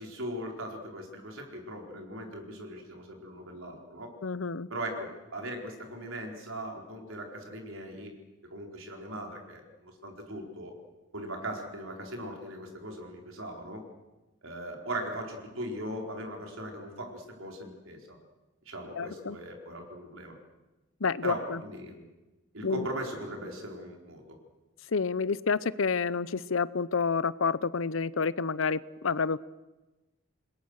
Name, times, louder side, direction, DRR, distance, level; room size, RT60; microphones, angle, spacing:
voice 1, 0.0-4.1 4.7-8.1 8.4-10.7 11.1-13.8 14.4-18.2 18.7-20.4 21.2-22.1 22.5-24.2, right 1 dB, 80° right, 2 dB, 4.4 m, -39 dB
voice 2, 4.2-4.7 19.0-19.4 21.0-21.6 22.6-22.9 24.9-29.4, left 5 dB, 75° left, 18 dB, 0.7 m, -29 dB
28.0 x 21.0 x 6.5 m, 1.1 s
head